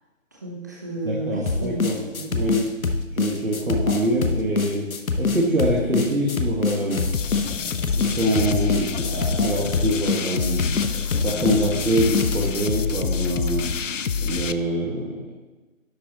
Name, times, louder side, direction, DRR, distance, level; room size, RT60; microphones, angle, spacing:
voice 1, 0.3-2.5, right 2 dB, 15° right, -3 dB, 0.9 m, -32 dB
voice 2, 1.0-2.0 2.3-2.7 3.1-4.9 5.2-7.0 8.0-10.6 11.2-13.6 14.2-15.2, right 1 dB, 90° right, -4 dB, 2.1 m, -24 dB
sound 1, 1.5-12.5, left 4 dB, 85° left, 1.1 m, -25 dB
sound 2, 7.1-14.5, left 6 dB, 65° left, 0.6 m, -27 dB
11.0 x 7.9 x 3.1 m, 1.2 s
figure-of-eight pair, 165°, 41 cm